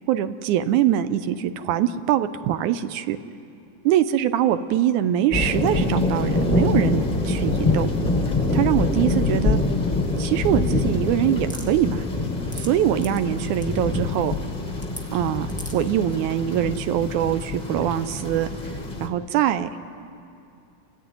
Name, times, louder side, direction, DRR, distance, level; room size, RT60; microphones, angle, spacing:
voice 1, 0.1-3.2 3.9-7.9 8.5-9.6 10.2-12.0 12.6-14.4 15.1-15.5 15.7-18.5 19.0-19.7, right 11 dB, 85° right, 11 dB, 2.2 m, -23 dB
sound 1, 5.3-19.1, left 2 dB, 40° left, 0.5 m, -25 dB
sound 2, 11.5-11.7 12.3-12.7 13.0-13.2 13.5-13.7 14.8-15.0 15.5-15.9, equal, 5° left, 1.3 m, -37 dB
29.0 x 14.0 x 9.5 m, 2.6 s
omnidirectional pair, 3.5 m